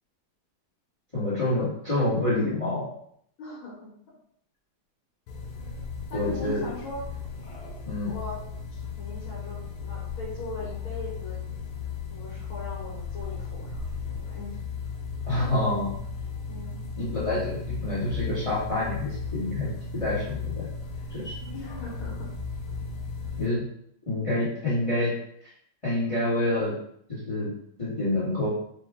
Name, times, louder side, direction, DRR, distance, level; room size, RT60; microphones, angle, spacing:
voice 1, 1.1-2.9 6.1-6.6 7.9-8.1 15.3-15.9 17.0-20.7 21.1-21.3 23.4-23.6 24.1-25.1 25.8-26.7 27.1-27.5 27.8-28.5, left 1 dB, 15° left, -8 dB, 1.3 m, -27 dB
voice 2, 3.4-4.0 6.1-7.3 8.1-8.4 9.0-11.4 12.1-14.6 16.5-16.9 21.3-22.3, left 2 dB, 65° left, -7 dB, 2.1 m, -40 dB
sound 1, 5.3-23.5, left 5 dB, 85° left, 1.7 m, -36 dB
5.1 x 2.5 x 3.5 m, 0.67 s
omnidirectional pair, 2.4 m